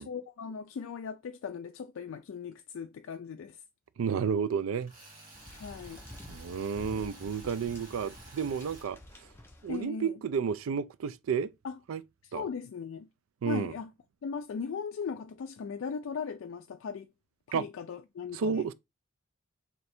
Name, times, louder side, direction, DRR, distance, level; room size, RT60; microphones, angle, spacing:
voice 1, 0.0-3.6 5.5-6.0 9.7-10.1 11.6-11.8 12.3-13.1 13.5-13.9 14.2-17.1 17.5-18.6, left 6 dB, 65° left, 0.3 m, -38 dB
voice 2, 4.0-4.9 6.3-9.3 9.6-11.5 11.9-12.0 12.3-12.5 13.4-13.7 17.5-17.6 18.3-18.7, right 6 dB, 75° right, 0.4 m, -31 dB
Tools, 4.8-8.9, right 2 dB, 40° right, 1.8 m, -52 dB
sound 1, 5.3-9.8, left 1 dB, 10° left, 0.6 m, -49 dB
3.2 x 2.7 x 4.3 m
head